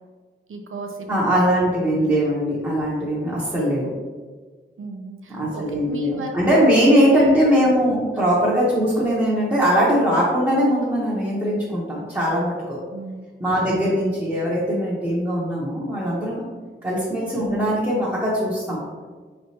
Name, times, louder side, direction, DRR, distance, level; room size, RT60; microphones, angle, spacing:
voice 1, 0.5-1.1 4.8-6.7 8.1-8.4 12.9-13.3 13.7-13.9, right 4 dB, 85° right, 3 dB, 0.6 m, -35 dB
voice 2, 1.1-3.9 5.3-12.8 13.4-16.5 16.8-18.8, equal, 10° right, -9 dB, 0.9 m, -20 dB
4.7 x 3.2 x 2.8 m, 1.5 s
wide cardioid pair, 95°, 20 cm